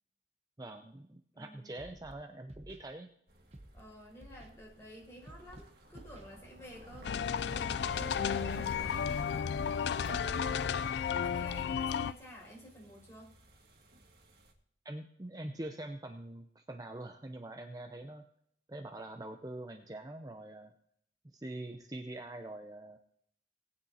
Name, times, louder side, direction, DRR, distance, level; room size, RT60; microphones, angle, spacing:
voice 1, 0.6-3.1 10.0-10.5 14.8-18.2 18.7-20.7 21.3-23.0, right 1 dB, 20° right, 6 dB, 0.6 m, -44 dB
voice 2, 1.3-1.8 3.7-8.5 11.2-13.3, equal, 15° left, -3 dB, 4.6 m, -52 dB
Scratching (performance technique), 1.8-2.1 2.5-2.8 3.5-3.8 4.2-4.5 5.2-5.6 5.9-6.3 6.9-7.3 7.7-8.0, right 1 dB, 35° right, 1.0 m, -52 dB
sound 1, 3.3-14.5, equal, 60° right, 1.7 m, -50 dB
sound 2, 7.0-12.1, left 7 dB, 75° left, 0.3 m, -33 dB
19.0 x 9.6 x 2.8 m, 0.69 s
head